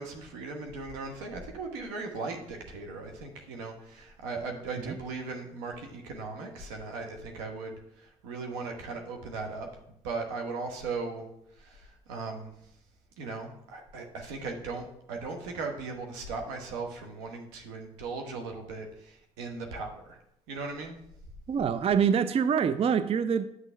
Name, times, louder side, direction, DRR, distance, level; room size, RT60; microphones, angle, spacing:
voice 1, 0.0-9.7 10.0-11.3 11.6-12.5 13.2-20.2 20.5-21.0, right 3 dB, 80° right, 3 dB, 1.1 m, -38 dB
voice 2, 21.5-23.5, right 7 dB, 35° right, 12 dB, 0.4 m, -25 dB
9.1 x 6.1 x 3.3 m, 0.79 s
hypercardioid pair, 50°, 17 cm